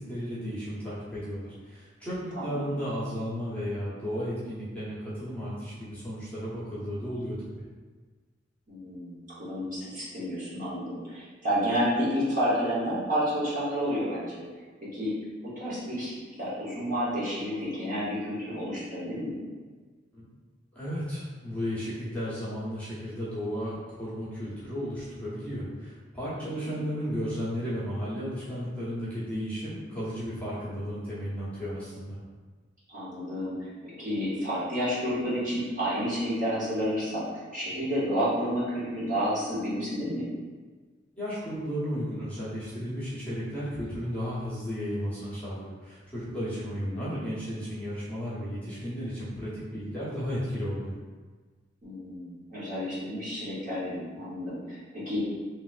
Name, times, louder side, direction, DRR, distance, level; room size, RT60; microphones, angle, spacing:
voice 1, 0.0-7.6 20.1-20.2 20.7-32.2 41.2-50.9, equal, 10° left, -11 dB, 0.9 m, -34 dB
voice 2, 2.3-2.7 8.7-14.4 14.8-15.2 15.6-19.4 26.4-26.8 32.9-40.3 46.9-47.2 51.8-55.2, equal, 45° right, -9 dB, 1.2 m, -30 dB
3.3 x 3.0 x 2.5 m, 1.4 s
head